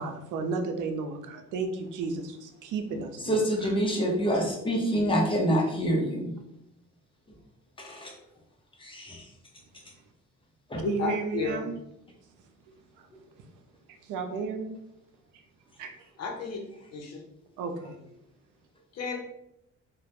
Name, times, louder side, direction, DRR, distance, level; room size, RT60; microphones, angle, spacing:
voice 1, 0.0-3.7 10.8-11.7 12.4-12.5 12.9-13.4 13.9-14.7 15.3-15.4 15.8-16.1 17.6-18.0, right 4 dB, 85° right, 0.5 m, -34 dB
voice 2, 3.2-6.4 7.8-8.1 8.8-9.3 10.7-10.8 13.1-13.2, equal, 15° left, 0.7 m, -27 dB
voice 3, 10.8-11.6 16.2-16.6 16.9-17.1 18.9-19.2, left 4 dB, 55° left, 0.6 m, -32 dB
2.2 x 2.1 x 2.8 m
cardioid pair, 90°, 30 cm